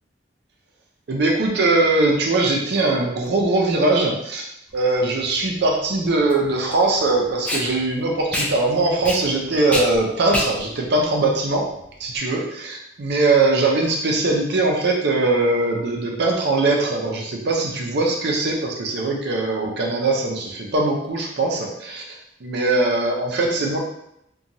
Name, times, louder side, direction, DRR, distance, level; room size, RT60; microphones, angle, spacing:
voice 1, 1.1-4.4 4.7-11.7 12.0-22.0 22.4-23.8, right 2 dB, 65° right, 0 dB, 0.5 m, -21 dB
Packing tape duct tape, 4.7-12.2, left 1 dB, 10° left, 0.4 m, -30 dB
2.8 x 2.2 x 2.6 m, 0.78 s
head